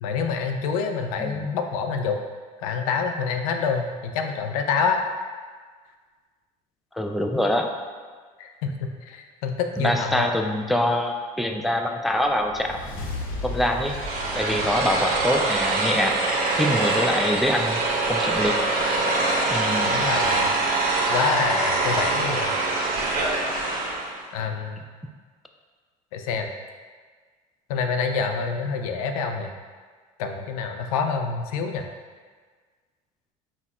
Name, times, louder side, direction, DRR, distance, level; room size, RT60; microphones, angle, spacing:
voice 1, 0.0-2.2 2.6-5.0 8.4-10.3 19.8-20.5 21.1-22.5 24.3-24.8 26.1-26.5 27.7-29.5 30.2-31.8, left 5 dB, 85° left, 5 dB, 0.4 m, -27 dB
voice 2, 1.2-1.5 6.9-7.7 9.8-12.8 13.4-14.0 14.3-16.2 16.6-17.8 18.1-18.6 19.5-20.0, left 1 dB, ahead, 3 dB, 0.3 m, -24 dB
sound 1, 12.2-16.8, left 2 dB, 50° left, 0.9 m, -36 dB
sound 2, 13.9-24.2, right 2 dB, 55° right, 0.9 m, -24 dB
4.0 x 2.4 x 4.2 m, 1.5 s
supercardioid pair, 85°, 18 cm